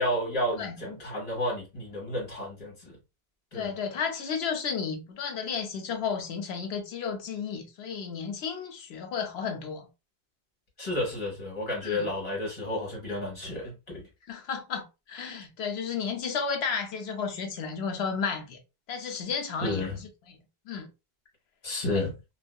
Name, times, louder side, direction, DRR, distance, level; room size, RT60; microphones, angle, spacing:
voice 1, 0.0-3.0 3.5-3.7 10.8-14.1 19.6-20.0 21.6-22.1, left 1 dB, 35° left, 1.4 m, -31 dB
voice 2, 3.5-9.9 11.8-12.1 14.3-18.6 18.9-20.4 20.7-20.9 21.9-22.1, left 6 dB, 75° left, 0.9 m, -33 dB
2.6 x 2.2 x 2.2 m
omnidirectional pair, 1.1 m